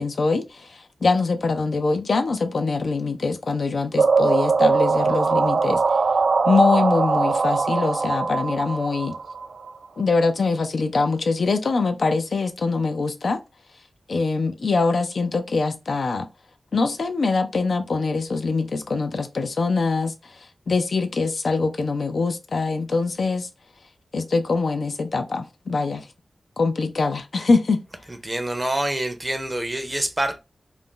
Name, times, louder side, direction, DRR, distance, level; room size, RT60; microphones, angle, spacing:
voice 1, 0.0-6.0 6.5-9.1 10.0-13.4 14.1-16.3 16.7-23.5 24.1-26.1 26.6-27.8, left 4 dB, 70° left, 0.4 m, -23 dB
sound 1, 4.0-9.7, right 4 dB, 75° right, 0.3 m, -21 dB
voice 2, 28.2-30.4, right 1 dB, 20° right, 0.5 m, -26 dB
2.4 x 2.0 x 3.7 m
cardioid pair, 60°, 0 cm